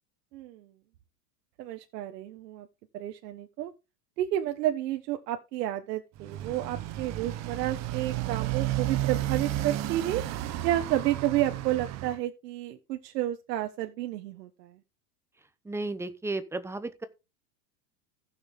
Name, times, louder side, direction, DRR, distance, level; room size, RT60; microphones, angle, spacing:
voice 1, 0.3-0.7 1.6-2.7 2.9-3.7 4.2-10.2 10.6-14.8, right 13 dB, 70° right, 1.3 m, -31 dB
Motorcycle, 6.2-12.2, right 14 dB, 35° right, 0.9 m, -32 dB
voice 2, 15.6-17.0, right 2 dB, 5° right, 0.7 m, -33 dB
15.5 x 6.5 x 3.7 m
supercardioid pair, 135°, 49 cm